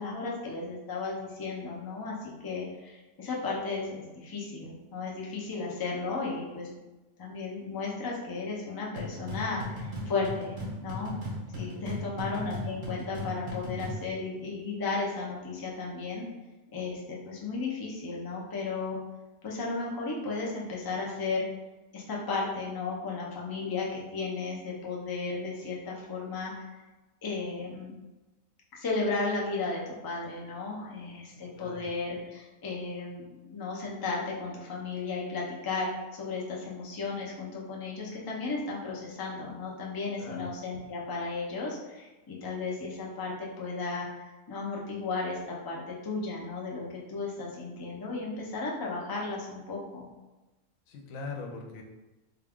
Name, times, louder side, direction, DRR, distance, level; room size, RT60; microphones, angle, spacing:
voice 1, 0.0-6.7 7.2-10.6 10.8-11.1 11.5-16.2 16.7-19.0 19.4-21.5 21.9-26.8 27.2-27.9 28.7-50.1, left 3 dB, 30° left, -4 dB, 0.4 m, -34 dB
sound 1, 9.0-14.1, left 1 dB, 75° right, 1.4 m, -37 dB
voice 2, 11.7-12.2 31.5-31.9 40.2-40.5 50.9-51.8, left 3 dB, 85° left, 1 dB, 1.1 m, -42 dB
3.8 x 2.4 x 3.5 m, 1.1 s
omnidirectional pair, 1.4 m